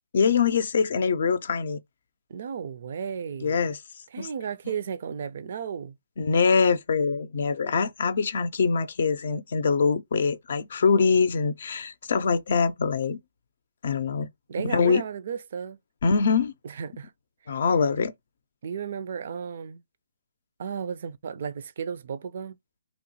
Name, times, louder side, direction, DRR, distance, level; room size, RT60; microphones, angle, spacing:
voice 1, 0.1-1.8 3.4-3.8 4.2-4.3 6.2-13.2 13.8-14.3 14.6-15.0 16.0-16.5 17.5-18.1, left 5 dB, 60° left, 0.4 m, -23 dB
voice 2, 2.3-3.6 4.1-6.0 14.5-15.8 16.6-17.1 18.6-19.8 20.6-22.6, right 7 dB, 55° right, 0.4 m, -34 dB
3.0 x 2.1 x 2.6 m
figure-of-eight pair, 140°, 0 cm